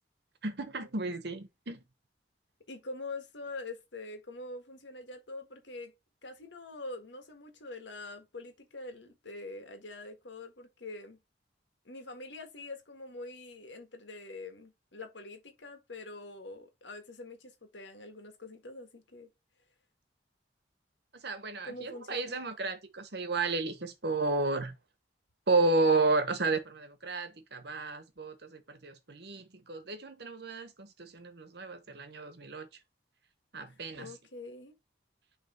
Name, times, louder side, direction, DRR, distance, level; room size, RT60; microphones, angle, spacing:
voice 1, 0.4-1.8 21.2-24.7 25.5-32.7 33.5-34.1, right 3 dB, 65° right, 1.2 m, -32 dB
voice 2, 2.7-5.9 6.2-11.2 11.8-19.3 21.6-22.4 33.7-34.7, left 2 dB, 85° left, 1.6 m, -45 dB
6.5 x 3.3 x 4.3 m
head